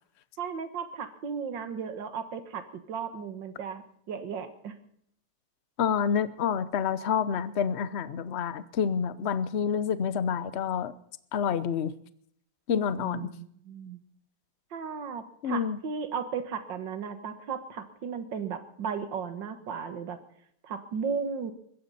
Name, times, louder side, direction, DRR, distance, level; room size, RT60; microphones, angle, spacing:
voice 1, 0.4-4.7 13.0-14.0 14.7-20.2 20.6-21.5, right 6 dB, 60° right, 9 dB, 2.2 m, -35 dB
voice 2, 5.8-10.9 11.3-11.9 12.7-13.3 15.4-15.8, left 7 dB, 55° left, 15 dB, 0.7 m, -28 dB
21.0 x 16.0 x 4.2 m, 0.67 s
omnidirectional pair, 2.3 m